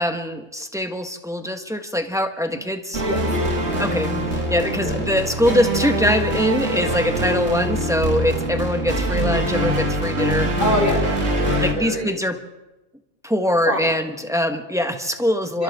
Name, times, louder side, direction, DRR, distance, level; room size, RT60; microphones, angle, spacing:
voice 1, 0.0-3.0 3.8-10.5 11.6-12.4 13.2-15.6, left 1 dB, 5° right, 5 dB, 1.3 m, -23 dB
sound 1, 2.9-11.7, right 1 dB, 65° right, 2.9 m, -23 dB
voice 2, 3.0-3.4 3.7-3.9 4.6-5.0 10.6-12.2 13.7-14.0 15.5-15.6, left 1 dB, 45° left, 0 dB, 5.3 m, -26 dB
29.5 x 25.5 x 3.7 m, 1.0 s
omnidirectional pair, 1.2 m